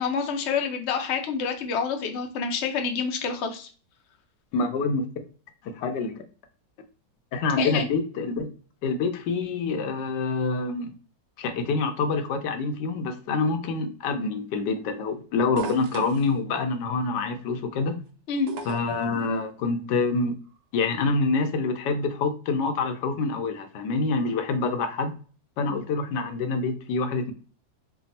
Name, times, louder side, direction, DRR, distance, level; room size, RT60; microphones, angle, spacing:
voice 1, 0.0-3.7 7.6-7.9 18.3-18.5, left 6 dB, 65° left, 5 dB, 0.7 m, -27 dB
voice 2, 4.5-5.0 5.6-6.2 7.3-8.5 8.8-10.9 11.4-18.0 18.6-20.3 20.7-25.1 25.6-27.3, left 4 dB, 80° left, 7 dB, 1.2 m, -26 dB
sound 1, 15.6-16.3 18.5-19.0 20.6-20.7, right 3 dB, 70° right, 1.0 m, -34 dB
3.4 x 2.3 x 4.0 m, 0.38 s
omnidirectional pair, 1.9 m